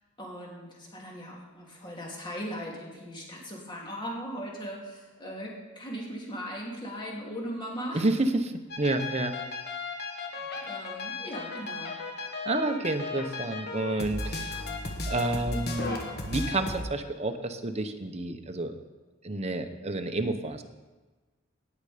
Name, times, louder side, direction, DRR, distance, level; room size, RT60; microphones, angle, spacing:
voice 1, 0.2-5.5 5.7-8.3 10.4-11.9, equal, 20° left, -2 dB, 2.7 m, -38 dB
voice 2, 7.9-9.3 12.5-14.6 15.1-18.7 19.2-20.6, right 2 dB, 30° right, 7 dB, 0.8 m, -30 dB
sound 1, 8.7-16.8, left 3 dB, 50° left, 1.6 m, -35 dB
18.0 x 6.7 x 5.0 m, 1.3 s
head